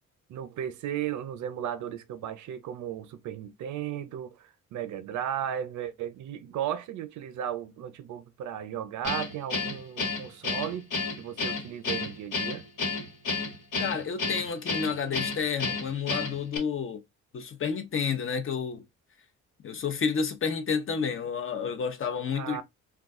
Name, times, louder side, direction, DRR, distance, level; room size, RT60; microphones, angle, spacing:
voice 1, 0.3-12.7 22.3-22.6, right 10 dB, 75° right, 0.6 m, -35 dB
Guitar, 9.0-16.6, left 4 dB, 75° left, 1.5 m, -31 dB
voice 2, 13.8-17.0 17.3-18.8 19.6-22.6, left 6 dB, 45° left, 0.8 m, -30 dB
2.3 x 2.3 x 3.5 m
cardioid pair, 90°, 30 cm